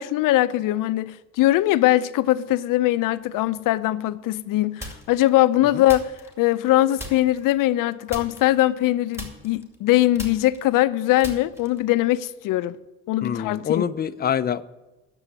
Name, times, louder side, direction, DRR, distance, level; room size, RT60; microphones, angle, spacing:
voice 1, 0.0-6.1 6.4-12.8 13.1-13.9, left 15 dB, 90° left, 0.6 m, -21 dB
sound 1, 4.8-5.3 5.9-6.7 7.0-7.5 8.1-8.9 9.1-11.9, equal, 10° right, 2.4 m, -38 dB
voice 2, 13.2-14.6, left 8 dB, 30° left, 0.5 m, -25 dB
9.8 x 7.0 x 8.4 m
cardioid pair, 115°, 31 cm